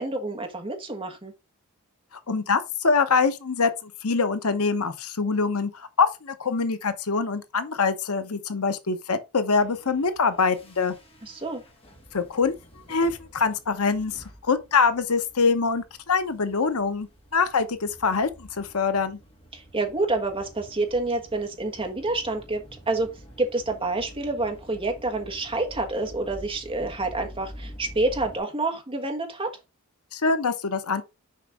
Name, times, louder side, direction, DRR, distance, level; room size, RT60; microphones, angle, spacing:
voice 1, 0.0-1.3 11.2-11.6 19.5-23.1 23.4-29.6, right 2 dB, 25° right, 1.5 m, -28 dB
voice 2, 2.3-10.9 12.1-12.5 12.9-19.2 30.1-31.0, left 4 dB, 75° left, 0.9 m, -24 dB
sound 1, 9.5-28.4, equal, 25° left, 2.2 m, -48 dB
6.6 x 5.3 x 3.6 m
head